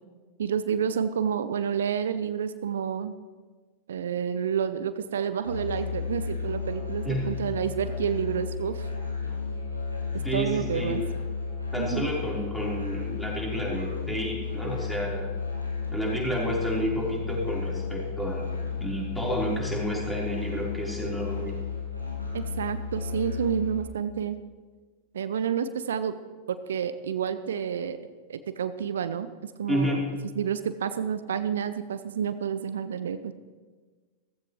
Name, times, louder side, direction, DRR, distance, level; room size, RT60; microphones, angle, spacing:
voice 1, 0.4-3.2 3.9-8.9 10.3-11.0 11.8-12.1 22.3-24.4 25.1-26.2 26.5-28.0 28.3-30.0 30.3-33.3, right 8 dB, 65° right, 12 dB, 0.6 m, -29 dB
Musical instrument, 5.4-23.8, left 5 dB, 85° left, 3.0 m, -33 dB
voice 2, 10.1-11.0 11.7-15.3 15.9-18.4 18.8-21.6 29.7-30.1, equal, 5° left, -4 dB, 4.4 m, -30 dB
16.0 x 15.0 x 3.3 m, 1.4 s
figure-of-eight pair, 90°, 0 cm